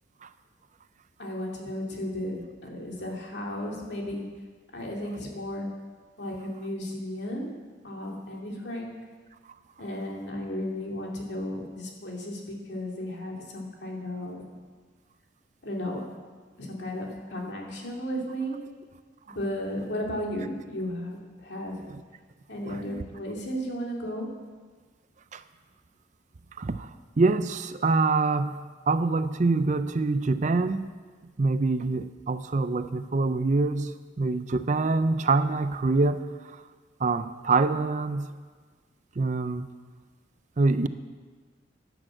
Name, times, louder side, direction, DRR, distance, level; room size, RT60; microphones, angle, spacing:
voice 1, 1.2-4.3 4.7-5.7 6.2-7.5 7.8-9.0 9.8-14.4 15.6-16.0 16.6-18.6 19.3-21.8 22.5-24.3, equal, 60° left, -1 dB, 2.7 m, -34 dB
voice 2, 22.6-23.0 25.3-25.4 26.6-28.6 28.9-30.9 31.4-36.6 37.0-38.3 39.2-39.7 40.6-40.9, right 3 dB, 40° right, 11 dB, 0.5 m, -25 dB
10.5 x 10.0 x 7.8 m, 1.5 s
head